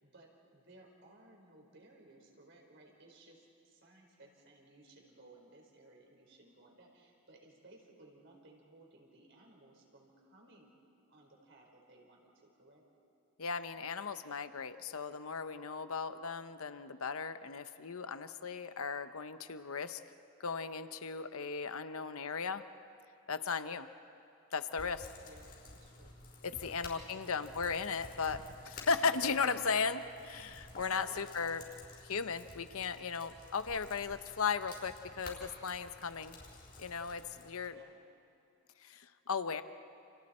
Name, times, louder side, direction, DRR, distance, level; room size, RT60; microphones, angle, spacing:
voice 1, 0.0-10.7 11.1-12.8 23.5-23.7 25.2-26.2 26.7-27.3 30.9-31.7 37.7-38.0, right 2 dB, 55° right, 0 dB, 4.6 m, -60 dB
voice 2, 13.4-20.0 20.4-22.6 23.3-23.9 24.5-25.1 26.4-31.6 32.1-36.4 36.8-37.8 38.8-39.6, left 5 dB, 75° left, 11 dB, 0.8 m, -36 dB
sound 1, 24.8-37.7, left 2 dB, 40° left, 5.1 m, -53 dB
30.0 x 29.5 x 4.4 m, 2.8 s
head